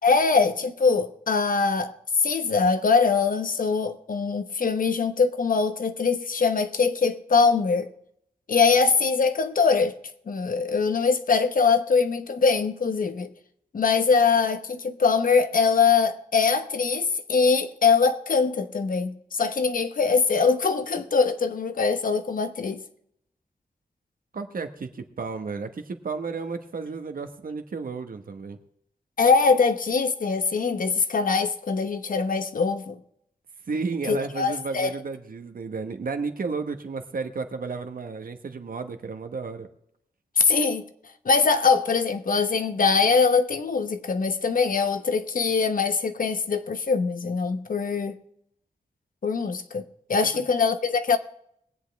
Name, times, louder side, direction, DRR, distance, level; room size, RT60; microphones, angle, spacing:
voice 1, 0.0-1.9 2.2-7.9 8.5-9.9 10.3-13.3 13.7-22.8 29.2-33.0 34.1-34.9 40.4-40.8 41.2-48.2 49.2-49.8 50.1-51.2, left 5 dB, 65° left, 1.0 m, -22 dB
voice 2, 24.3-28.6 33.7-39.7 50.3-50.4, right 4 dB, 70° right, 1.3 m, -32 dB
21.5 x 8.3 x 3.5 m
wide cardioid pair, 80°, 15 cm